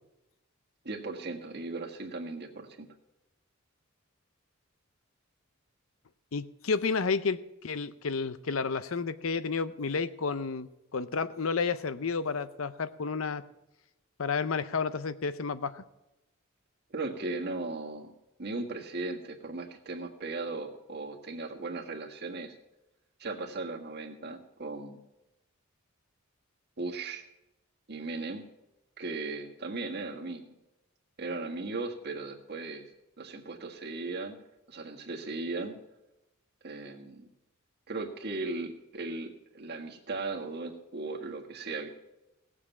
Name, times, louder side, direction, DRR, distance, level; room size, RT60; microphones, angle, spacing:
voice 1, 0.8-2.9 16.9-18.1 18.4-22.5 23.2-25.0 26.8-27.2 27.9-28.4 29.0-30.4 31.2-32.9 33.2-34.4 34.7-35.8 36.6-37.3 37.9-41.9, right 3 dB, 55° right, 3 dB, 1.6 m, -37 dB
voice 2, 6.3-13.4 14.2-15.8, left 5 dB, 70° left, 14 dB, 0.7 m, -31 dB
17.0 x 7.4 x 7.1 m, 0.93 s
head